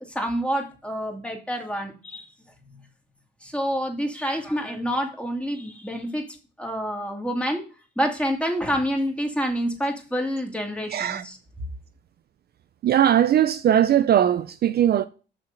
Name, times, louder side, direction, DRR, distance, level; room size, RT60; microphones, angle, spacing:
voice 1, 0.1-2.3 3.4-6.2 6.6-7.6 8.0-11.4, equal, 5° left, 2.3 m, -27 dB
voice 2, 10.9-11.2 12.8-15.1, right 10 dB, 55° right, 0.4 m, -19 dB
6.7 x 6.0 x 5.8 m
cardioid pair, 90°, 20 cm